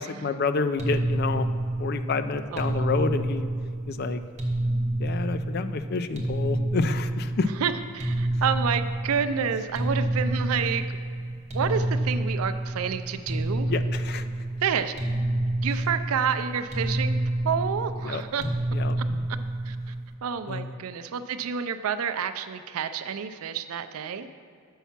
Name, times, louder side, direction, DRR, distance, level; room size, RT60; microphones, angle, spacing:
voice 1, 0.0-1.5 1.8-3.5 3.9-4.2 5.0-7.5 13.7-14.3 18.0-19.2 20.5-20.8, left 4 dB, 45° left, 10 dB, 0.4 m, -29 dB
sound 1, 0.8-20.1, right 1 dB, 30° right, 1.0 m, -28 dB
voice 2, 2.5-2.9 7.6-11.0 11.5-13.7 14.6-14.9 15.6-17.2 17.4-18.4 19.7-19.9 20.2-24.3, right 7 dB, 80° right, 11 dB, 0.4 m, -29 dB
7.1 x 5.5 x 5.8 m, 2.3 s
head